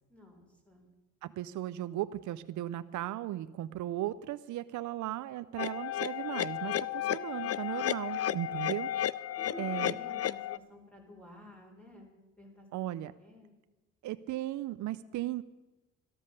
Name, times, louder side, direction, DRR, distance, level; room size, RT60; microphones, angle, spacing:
voice 1, 0.1-0.9 9.4-12.8 13.2-13.5, left 1 dB, 5° left, 0 dB, 4.6 m, -52 dB
voice 2, 1.2-8.9 9.6-10.0 12.7-13.1 14.0-15.4, right 14 dB, 75° right, 14 dB, 0.6 m, -36 dB
sound 1, 5.6-10.6, left 12 dB, 55° left, 0.5 m, -33 dB
13.0 x 13.0 x 6.6 m, 1.1 s
cardioid pair, 90°, 30 cm